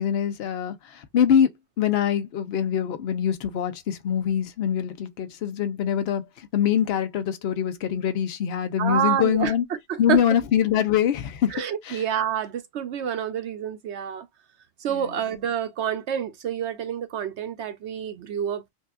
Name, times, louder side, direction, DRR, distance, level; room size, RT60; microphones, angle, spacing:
voice 1, 0.0-9.6 10.0-11.6 11.8-12.0, left 9 dB, 60° left, 0.9 m, -24 dB
voice 2, 8.8-9.5 9.9-10.2 11.5-14.3 14.8-18.7, right 9 dB, 70° right, 0.8 m, -28 dB
5.2 x 2.4 x 2.4 m
omnidirectional pair, 1.3 m